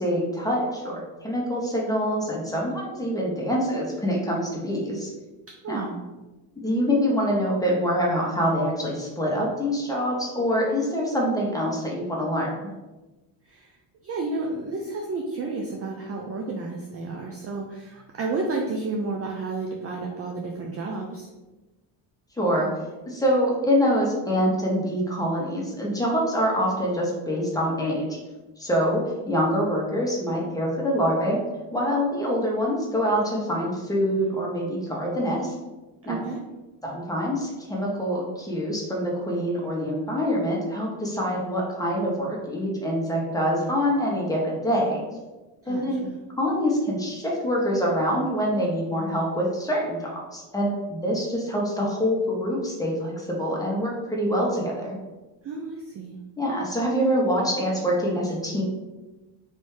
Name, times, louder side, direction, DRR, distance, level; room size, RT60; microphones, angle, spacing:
voice 1, 0.0-5.1 5.7-5.9 6.6-12.5 22.4-22.7 23.1-28.2 28.6-31.4 31.7-35.5 36.1-36.2 36.8-45.0 45.7-46.0 46.4-54.9 56.4-58.6, equal, 5° left, -3 dB, 1.0 m, -25 dB
voice 2, 5.6-6.0 13.4-13.8 14.0-21.3 36.0-36.4 45.6-46.2 55.4-56.2, right 3 dB, 35° right, 1 dB, 0.4 m, -31 dB
3.3 x 2.6 x 3.1 m, 1.1 s
cardioid pair, 95°, 48 cm